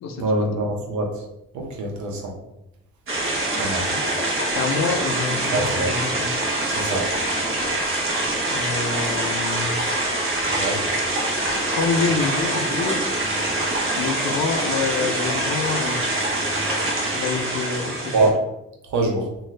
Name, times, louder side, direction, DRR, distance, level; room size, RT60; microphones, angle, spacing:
voice 1, 0.2-1.1 1.5-2.3 3.5-3.9 5.5-5.9 6.7-7.1 10.5-10.8 18.1-18.4 18.9-19.3, right 2 dB, 70° right, 1 dB, 0.8 m, -24 dB
sound 1, 3.1-18.3, right 1 dB, 45° right, 0.9 m, -24 dB
voice 2, 4.5-6.3 8.5-9.8 11.7-13.1 14.0-16.0 17.1-18.3, left 5 dB, 60° left, 5 dB, 0.5 m, -27 dB
2.6 x 2.4 x 3.2 m, 0.84 s
cardioid pair, 90°, 30 cm